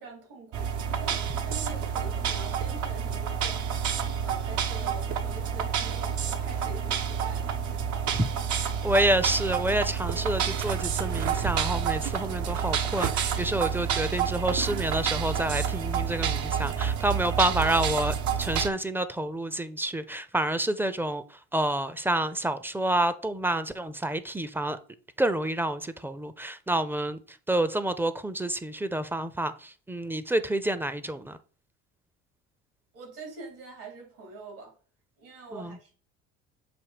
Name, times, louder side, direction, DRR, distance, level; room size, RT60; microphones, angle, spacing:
voice 1, 0.0-3.8 4.2-7.5 32.9-34.7 35.2-35.9, right 3 dB, 80° right, 3.4 m, -44 dB
sound 1, 0.5-18.7, right 7 dB, 60° right, 0.8 m, -29 dB
voice 2, 8.8-24.8 25.2-31.4 35.5-35.8, right 1 dB, 5° right, 0.5 m, -28 dB
6.9 x 2.7 x 4.9 m
supercardioid pair, 80°, 32 cm